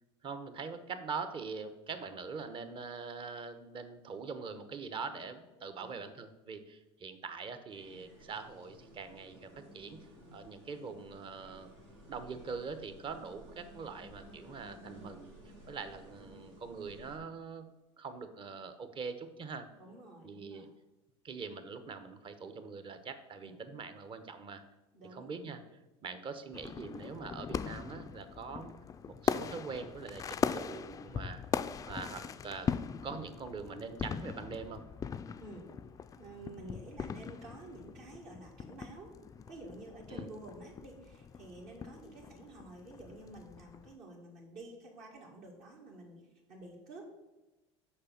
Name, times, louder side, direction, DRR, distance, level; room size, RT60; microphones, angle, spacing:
voice 1, 0.2-11.7 12.1-15.3 15.7-17.7 18.0-19.7 20.2-20.7 21.2-24.6 25.1-25.6 26.0-28.7 29.1-31.4 31.9-32.7 33.0-34.8 40.1-40.3, right 5 dB, 35° right, 10 dB, 0.9 m, -43 dB
sound 1, 7.7-17.2, right 1 dB, 85° right, 2.8 m, -55 dB
voice 2, 19.7-20.7 23.4-23.6 24.9-25.5 32.3-32.4 35.4-35.7 36.2-39.2 39.5-47.1, right 2 dB, 60° right, -2 dB, 1.8 m, -50 dB
sound 2, 26.5-44.0, left 6 dB, 25° left, 0.3 m, -40 dB
6.6 x 5.2 x 5.7 m, 1.1 s
hypercardioid pair, 85°, 14 cm